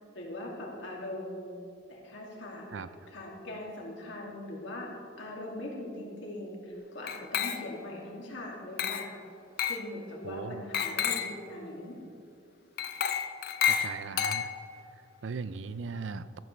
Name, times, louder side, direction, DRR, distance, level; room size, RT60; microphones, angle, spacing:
voice 1, 0.1-1.5 1.9-4.9 5.2-9.1 9.6-12.0, left 1 dB, 70° left, -2 dB, 2.5 m, -41 dB
Glass, 7.1-7.9 8.8-9.2 9.6-9.9 10.7-11.4 12.8-14.8, left 8 dB, 50° left, 0.6 m, -31 dB
voice 2, 10.2-10.6 13.7-14.5 15.0-16.4, right 4 dB, 70° right, 14 dB, 0.5 m, -38 dB
13.5 x 12.0 x 3.3 m, 2.5 s
head